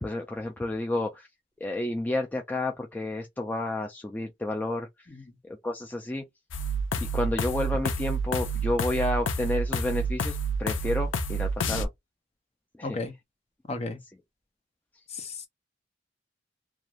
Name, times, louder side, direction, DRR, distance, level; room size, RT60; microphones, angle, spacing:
voice 1, 0.0-1.3 1.6-4.9 5.5-6.2 7.1-11.9 12.8-13.0, left 1 dB, 10° left, 0.3 m, -30 dB
sound 1, 6.5-11.8, right 2 dB, 80° left, 0.5 m, -29 dB
voice 2, 12.8-13.1 13.7-14.0 15.1-15.5, left 3 dB, 35° left, 0.8 m, -34 dB
2.5 x 2.3 x 3.0 m
head